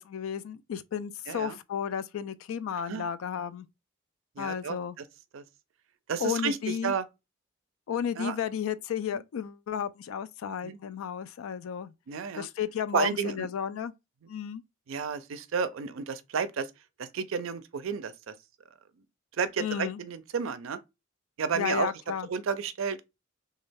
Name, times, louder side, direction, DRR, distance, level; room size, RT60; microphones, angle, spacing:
voice 1, 0.0-3.7 4.4-5.0 6.2-6.9 7.9-11.9 12.4-13.9 14.3-14.6 19.6-20.0 21.5-22.3, left 8 dB, 85° left, 0.3 m, -33 dB
voice 2, 1.3-1.6 2.7-3.1 4.4-4.8 5.3-5.4 6.1-7.0 8.2-8.4 10.6-10.8 12.1-12.5 12.9-13.5 14.9-16.7 17.0-18.3 19.4-20.8 21.4-21.9 22.3-23.0, right 6 dB, 75° right, 0.4 m, -31 dB
3.1 x 2.3 x 3.3 m
head